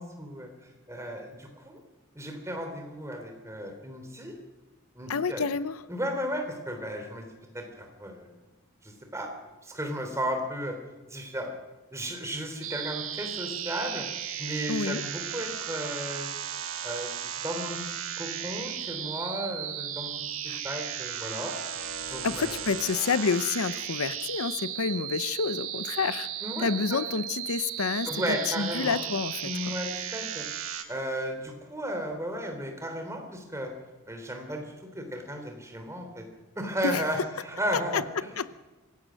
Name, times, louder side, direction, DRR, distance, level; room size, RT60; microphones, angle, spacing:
voice 1, 0.0-1.8 2.1-4.3 4.9-5.4 5.9-7.3 7.5-8.3 8.8-9.3 9.6-10.7 11.0-11.5 11.9-14.0 14.4-16.3 16.8-21.5 22.0-22.6 26.4-27.0 28.0-29.0 29.4-30.5 30.9-33.7 34.1-36.2 36.5-38.3, equal, 15° right, 4 dB, 3.4 m, -34 dB
voice 2, 5.1-5.8 14.7-15.0 20.5-20.6 22.2-26.3 26.6-29.4 36.8-37.0 37.9-38.0 38.4-38.5, left 5 dB, 90° left, 15 dB, 0.7 m, -29 dB
sound 1, 12.6-30.8, right 9 dB, 70° right, 2.0 m, -35 dB
25.0 x 16.5 x 6.4 m, 1.2 s
head